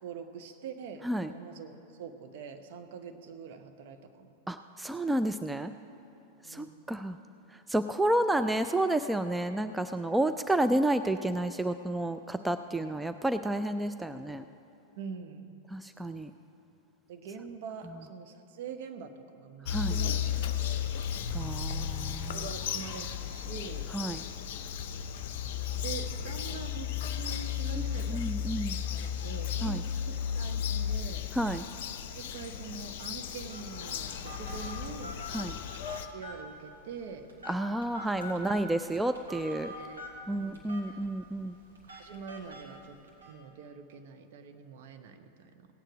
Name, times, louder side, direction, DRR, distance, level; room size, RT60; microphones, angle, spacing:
voice 1, 0.0-4.3 6.4-6.7 15.0-15.5 17.1-20.9 22.3-23.9 25.4-28.2 28.9-31.3 32.1-35.1 36.0-37.3 38.4-38.6 39.8-40.6 40.9-41.0 41.8-43.0 43.2-45.7, right 6 dB, 55° right, 6 dB, 0.9 m, -44 dB
voice 2, 4.5-5.7 6.4-7.2 7.7-14.4 15.7-16.3 19.7-20.0 21.3-22.5 23.9-24.2 28.1-28.8 29.6-29.8 31.3-31.6 35.3-35.6 37.5-39.7 40.3-41.6, right 1 dB, 5° right, 9 dB, 0.3 m, -30 dB
Bird vocalization bird call bird song, 19.6-36.1, left 8 dB, 50° left, 0.6 m, -34 dB
Telephone, 33.5-43.3, equal, 75° right, 2.5 m, -46 dB
17.0 x 9.1 x 4.8 m, 2.9 s
figure-of-eight pair, 90°, 0 cm